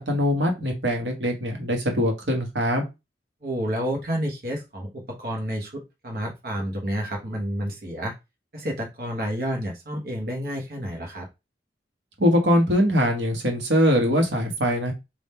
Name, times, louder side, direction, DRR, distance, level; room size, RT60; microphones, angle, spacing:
voice 1, 0.1-2.9 12.2-14.9, equal, 80° right, 2 dB, 1.3 m, -22 dB
voice 2, 3.4-8.2 8.5-11.3, equal, 55° right, 0 dB, 1.1 m, -30 dB
3.6 x 2.6 x 4.3 m, 0.23 s
head